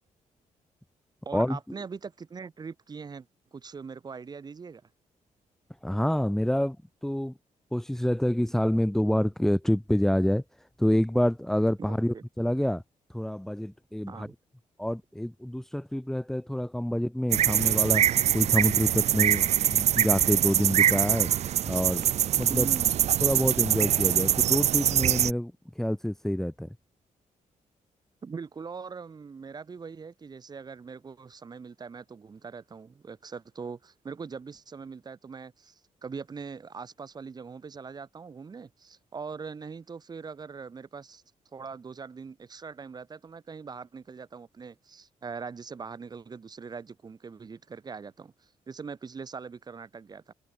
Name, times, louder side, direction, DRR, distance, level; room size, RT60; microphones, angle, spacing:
voice 1, 1.2-3.3 3.5-4.8 11.8-12.2 14.1-14.3 22.5-23.0 28.2-41.2 41.5-50.3, right 5 dB, 30° right, 2.7 m, -41 dB
voice 2, 5.8-6.8 7.0-7.3 7.7-10.4 10.8-12.8 13.1-14.3 14.8-18.1 18.3-21.3 21.7-22.0 22.4-22.7 23.2-26.7, equal, 5° left, 2.4 m, -27 dB
sound 1, 17.3-25.3, right 11 dB, 55° right, 0.4 m, -24 dB
wide cardioid pair, 165°, 14 cm